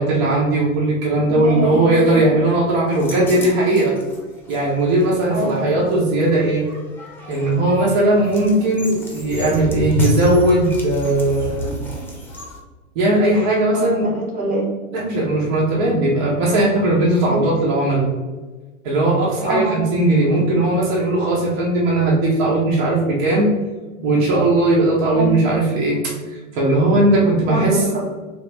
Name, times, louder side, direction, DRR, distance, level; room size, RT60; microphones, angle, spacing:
voice 1, 0.0-3.9 4.5-6.6 7.3-11.7 12.9-14.1 14.9-18.1 18.8-23.5 24.0-26.0 26.5-27.8, right 2 dB, 50° right, -5 dB, 1.3 m, -18 dB
voice 2, 1.3-2.0 3.2-3.4 5.3-5.7 13.7-14.7 17.3-17.4 19.4-19.8 25.1-25.4 27.4-28.1, right 1 dB, 20° right, -3 dB, 1.3 m, -24 dB
sound 1, 2.9-12.6, left 1 dB, 5° left, 0.8 m, -30 dB
3.4 x 3.1 x 3.5 m, 1.2 s
hypercardioid pair, 100°, 40 cm